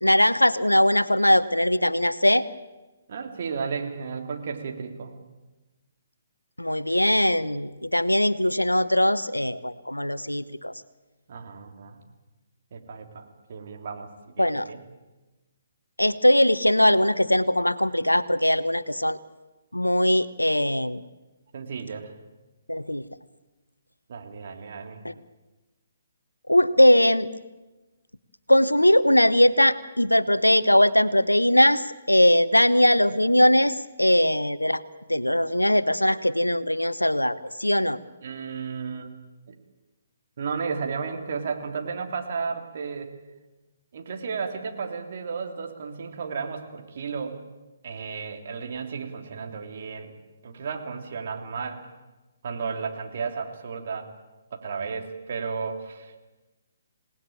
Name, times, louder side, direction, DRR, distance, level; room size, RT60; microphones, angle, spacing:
voice 1, 0.0-2.5 6.6-10.7 14.4-14.7 16.0-19.2 19.7-21.0 22.7-23.0 25.0-25.1 26.5-27.3 28.5-34.8 35.1-38.0, left 1 dB, 90° left, 15 dB, 1.0 m, -20 dB
voice 2, 3.1-5.1 11.3-12.0 12.7-14.1 14.4-14.8 21.5-22.1 24.1-25.0 38.2-39.1 39.5-39.6 40.4-43.1 43.9-47.4 47.8-50.1 50.4-51.9 52.4-54.1 54.5-56.2, right 5 dB, 50° right, 4 dB, 3.2 m, -33 dB
27.5 x 18.5 x 8.9 m, 1.1 s
figure-of-eight pair, 135°, 0 cm